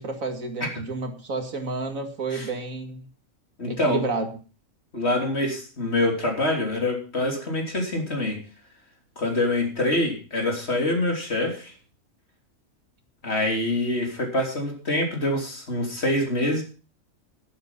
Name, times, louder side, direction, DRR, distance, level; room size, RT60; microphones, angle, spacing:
voice 1, 0.0-3.1 3.7-4.3, right 3 dB, 80° right, 5 dB, 2.6 m, -30 dB
voice 2, 3.6-4.0 4.9-8.4 9.2-11.7 13.2-16.6, left 1 dB, 50° left, 1 dB, 3.7 m, -25 dB
11.5 x 11.0 x 5.5 m, 0.36 s
omnidirectional pair, 1.4 m